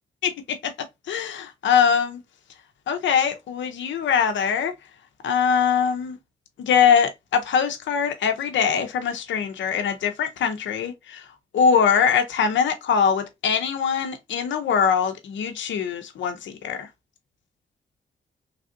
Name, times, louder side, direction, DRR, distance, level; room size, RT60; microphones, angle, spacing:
voice 1, 0.2-0.7 1.1-2.2 2.9-4.7 5.2-6.2 6.6-11.2 11.5-16.9, left 7 dB, 75° left, 0.6 m, -22 dB
3.3 x 2.5 x 2.4 m
supercardioid pair, 45°, 19 cm